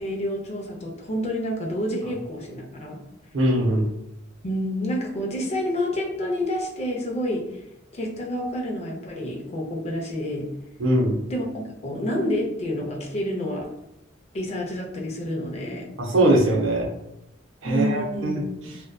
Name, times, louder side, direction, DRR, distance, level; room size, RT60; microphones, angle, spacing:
voice 1, 0.0-3.0 4.4-7.4 7.9-10.5 11.3-13.7 14.3-15.9 17.6-18.4 18.6-18.8, equal, 35° left, 0 dB, 0.5 m, -28 dB
voice 2, 3.3-3.8 10.8-11.1 16.0-16.9 17.6-18.4, right 1 dB, 70° right, 0 dB, 0.6 m, -21 dB
2.6 x 2.2 x 2.2 m, 0.89 s
head